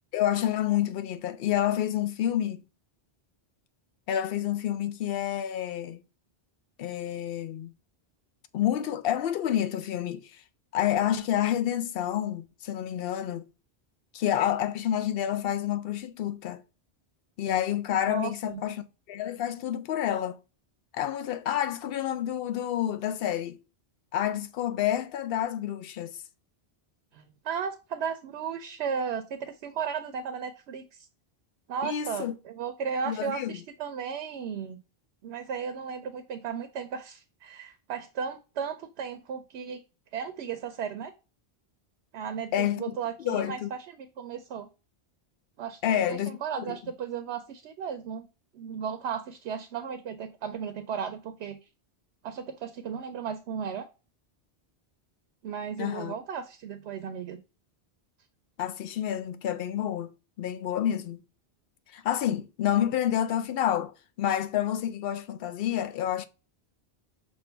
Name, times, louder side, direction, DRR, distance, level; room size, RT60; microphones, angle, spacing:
voice 1, 0.1-2.6 4.1-6.0 6.8-7.7 8.5-10.4 10.7-13.4 14.1-16.6 17.4-20.4 20.9-23.6 24.1-26.2 31.8-32.3 33.1-33.6 42.5-42.9 43.2-43.7 45.8-46.6 55.8-56.1 58.6-60.1 60.4-61.2 61.9-66.3, left 11 dB, 65° left, 0.7 m, -29 dB
voice 2, 18.1-18.6 27.1-31.1 31.7-34.8 35.2-39.8 40.1-41.1 42.1-44.7 45.6-48.3 48.5-51.6 52.2-53.9 55.4-57.4, right 7 dB, 85° right, 0.8 m, -35 dB
5.4 x 2.5 x 3.2 m
omnidirectional pair, 1.1 m